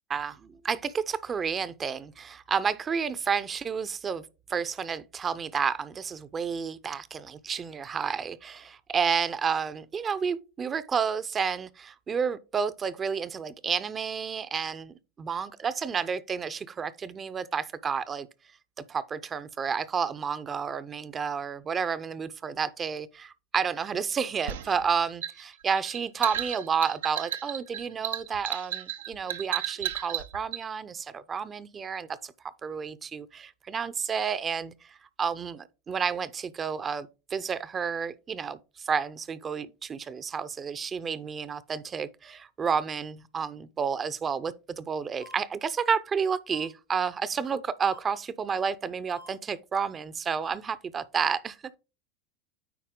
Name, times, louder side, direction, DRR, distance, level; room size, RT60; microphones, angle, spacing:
voice 1, 0.6-4.2 4.5-18.3 18.8-32.3 32.6-51.8, right 6 dB, 30° right, 0.6 m, -31 dB
sound 1, 24.5-30.6, right 11 dB, 85° right, 0.7 m, -33 dB
sound 2, 45.2-45.4 46.5-46.7 47.8-48.0 49.1-49.3 50.4-50.5, left 1 dB, 90° left, 2.9 m, -47 dB
9.4 x 4.2 x 3.8 m
hypercardioid pair, 95°, 0 cm